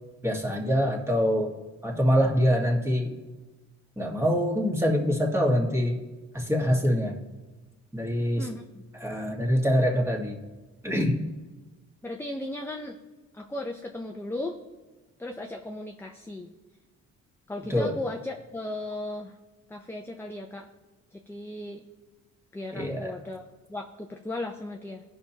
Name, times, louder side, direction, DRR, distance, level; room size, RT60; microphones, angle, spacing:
voice 1, 0.2-1.5 1.8-3.2 4.0-6.0 6.3-7.2 7.9-8.5 9.0-10.4 10.8-11.2 17.7-18.0 22.7-23.1, equal, 10° right, 0 dB, 1.7 m, -25 dB
voice 2, 8.4-8.8 12.0-13.0 13.3-14.6 15.2-16.5 17.5-19.4 19.7-20.7 21.1-21.8 22.5-25.0, left 1 dB, 10° left, 2 dB, 0.6 m, -36 dB
16.0 x 5.7 x 2.9 m, 1.2 s
cardioid pair, 90°, 30 cm